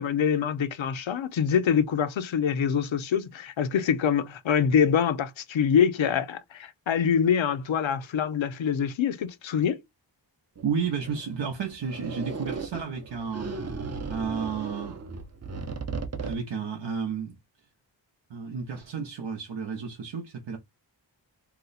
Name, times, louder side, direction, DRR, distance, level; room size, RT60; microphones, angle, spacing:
voice 1, 0.0-9.8, left 7 dB, 85° left, 0.6 m, -25 dB
sound 1, 10.6-16.3, right 4 dB, 35° right, 0.6 m, -36 dB
voice 2, 10.6-13.6 14.1-15.0 16.2-17.4 18.3-20.6, right 6 dB, 75° right, 0.7 m, -32 dB
2.8 x 2.0 x 3.9 m
wide cardioid pair, 85°, 46 cm